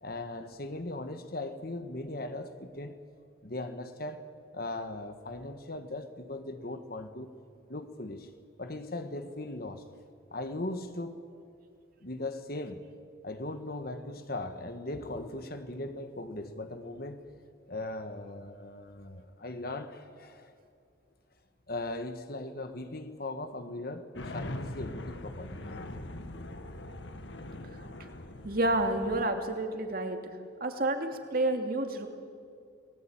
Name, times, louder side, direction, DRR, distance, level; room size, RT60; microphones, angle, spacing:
voice 1, 0.0-3.0 3.4-4.3 4.5-7.3 7.7-8.3 8.6-9.8 10.3-11.2 12.0-12.9 13.2-17.2 17.7-20.5 21.7-25.9, left 2 dB, 50° left, 8 dB, 1.5 m, -39 dB
sound 1, 24.1-29.2, left 1 dB, 65° left, 1.7 m, -42 dB
voice 2, 28.4-30.2 30.6-32.1, right 2 dB, 45° right, 5 dB, 2.6 m, -29 dB
30.0 x 19.5 x 8.9 m, 2.4 s
head